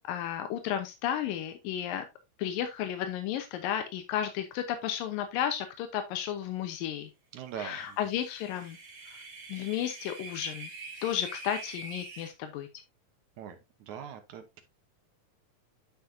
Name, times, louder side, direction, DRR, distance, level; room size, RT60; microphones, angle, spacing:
voice 1, 0.1-2.0 2.4-7.1 7.6-8.8 9.1-9.2 9.5-10.7 11.0-12.8, left 10 dB, 90° left, 7 dB, 2.7 m, -33 dB
voice 2, 7.3-8.0 13.4-13.6 13.8-14.6, right 8 dB, 70° right, 8 dB, 2.3 m, -41 dB
sound 1, 8.0-12.3, right 3 dB, 40° right, 1.9 m, -45 dB
10.0 x 5.9 x 2.7 m, 0.22 s
omnidirectional pair, 3.9 m